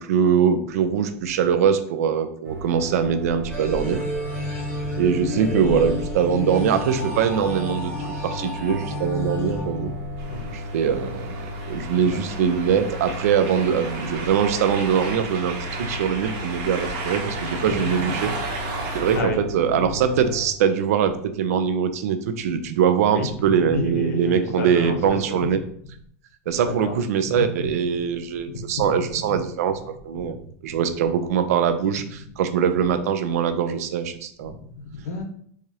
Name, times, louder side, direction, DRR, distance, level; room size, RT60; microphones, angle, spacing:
voice 1, 0.0-4.0 5.0-9.9 10.5-18.3 18.9-25.6 26.5-34.5, right 7 dB, 80° right, 9 dB, 0.5 m, -22 dB
sound 1, 2.4-20.5, left 1 dB, 25° right, 1.0 m, -35 dB
sound 2, 3.5-10.5, left 1 dB, 20° left, 1.3 m, -31 dB
voice 2, 4.9-5.9 7.0-7.1 9.4-9.6 10.3-10.6 11.7-12.4 17.7-18.4 19.0-19.4 19.7-19.9 23.1-25.5 25.8-25.9 26.6-27.0 27.3-28.0 28.5-29.1 29.3-29.4 30.1-30.2 30.7-30.8 32.0-32.1 34.4-35.2, left 3 dB, 90° left, 4 dB, 0.9 m, -32 dB
sound 3, 10.2-19.2, right 3 dB, 60° right, 1.0 m, -34 dB
4.8 x 2.4 x 2.7 m, 0.62 s
supercardioid pair, 140°, 8 cm